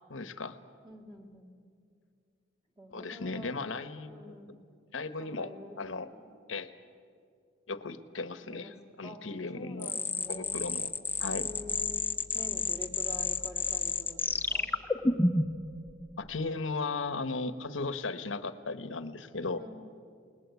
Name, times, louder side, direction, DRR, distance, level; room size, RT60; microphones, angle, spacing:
voice 1, 0.1-0.6 2.9-4.4 4.9-5.5 5.8-6.1 6.5-6.7 7.7-9.9 10.3-10.9 11.2-11.5 16.2-19.6, left 3 dB, 90° left, 11 dB, 1.1 m, -36 dB
voice 2, 0.8-1.5 2.8-3.5 4.0-4.6 5.2-5.8 6.1-6.2 8.5-9.3 9.5-10.7 11.3-12.1 12.3-14.7 19.6-19.8, left 1 dB, 25° right, 1 dB, 2.4 m, -47 dB
sound 1, 9.8-15.7, left 3 dB, 10° left, 0.8 m, -30 dB
28.5 x 20.0 x 8.2 m, 2.3 s
head